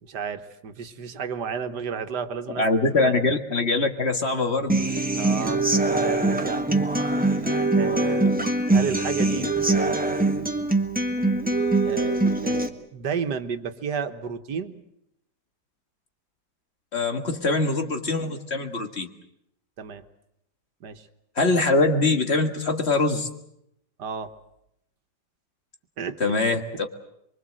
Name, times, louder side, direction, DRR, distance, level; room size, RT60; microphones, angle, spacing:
voice 1, 0.0-3.2 5.1-6.7 7.2-7.5 7.8-10.4 11.8-14.8 19.8-20.0 20.8-21.1 24.0-24.3 26.0-26.2, right 6 dB, 85° right, 8 dB, 1.9 m, -32 dB
voice 2, 2.6-4.8 16.9-19.1 21.4-23.3 26.2-26.6, left 3 dB, 40° left, 5 dB, 1.9 m, -23 dB
Human voice / Acoustic guitar, 4.7-12.7, right 2 dB, 5° right, 1.3 m, -23 dB
24.0 x 24.0 x 7.7 m, 0.78 s
omnidirectional pair, 1.8 m